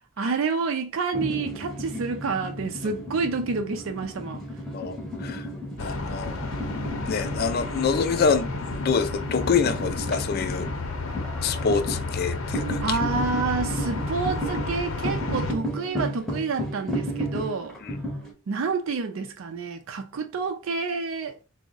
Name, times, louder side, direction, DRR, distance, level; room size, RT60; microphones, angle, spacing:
voice 1, 0.2-4.4 12.8-17.8 18.5-21.3, right 4 dB, 75° right, 0.4 m, -28 dB
sound 1, 1.1-18.3, equal, ahead, 0.7 m, -33 dB
voice 2, 4.7-5.5 5.8-6.4 7.0-10.7 11.4-13.0 17.8-18.0, left 5 dB, 50° left, 0.4 m, -26 dB
sound 2, 5.8-15.5, left 3 dB, 85° left, 0.7 m, -32 dB
3.5 x 2.0 x 3.8 m
head